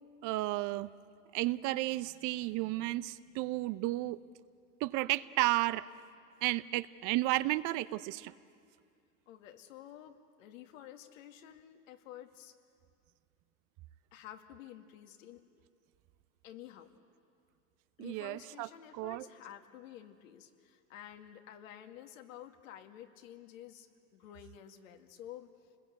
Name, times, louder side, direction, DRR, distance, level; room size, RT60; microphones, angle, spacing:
voice 1, 0.2-0.9 1.3-4.2 4.8-5.9 6.4-8.3 18.0-19.3, right 18 dB, 50° right, 15 dB, 0.8 m, -33 dB
voice 2, 9.3-12.6 14.1-15.4 16.4-16.9 18.0-25.5, left 11 dB, 70° left, 6 dB, 2.1 m, -51 dB
29.5 x 20.5 x 8.4 m, 2.3 s
hypercardioid pair, 90°, 41 cm